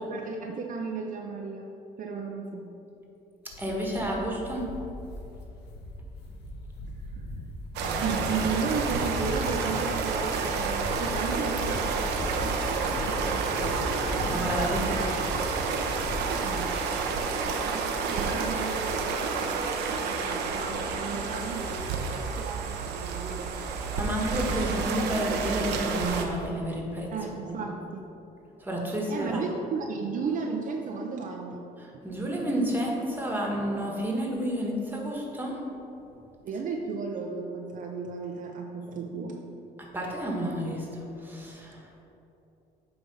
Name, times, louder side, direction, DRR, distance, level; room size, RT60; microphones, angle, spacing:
voice 1, 0.1-1.7 2.0-2.7 7.1-7.3 7.9-14.1 14.8-15.2 16.4-16.7 18.1-23.6 27.1-28.1 29.1-31.7 32.4-32.5 36.4-39.4, right 5 dB, 50° right, 1 dB, 0.6 m, -34 dB
voice 2, 3.4-4.7 14.3-15.0 23.9-27.1 27.4-27.6 28.6-29.5 31.8-35.6 39.8-41.9, right 1 dB, 10° right, -1 dB, 1.4 m, -30 dB
sound 1, 3.5-16.7, left 1 dB, 75° left, 1.1 m, -37 dB
sound 2, 7.8-26.3, right 4 dB, 80° right, 0.8 m, -30 dB
8.8 x 3.5 x 5.5 m, 2.9 s
cardioid pair, 110°, 17 cm